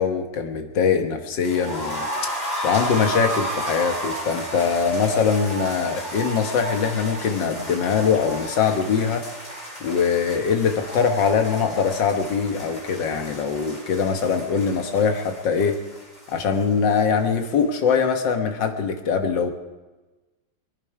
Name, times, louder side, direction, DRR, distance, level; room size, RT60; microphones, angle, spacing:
voice 1, 0.0-2.3 2.6-9.3 9.8-15.8 16.3-19.5, left 6 dB, 75° left, 5 dB, 2.0 m, -22 dB
sound 1, 1.4-17.3 17.5-17.6 17.9-18.0, equal, 50° left, 8.2 m, -33 dB
24.0 x 11.0 x 4.8 m, 1.2 s
omnidirectional pair, 2.0 m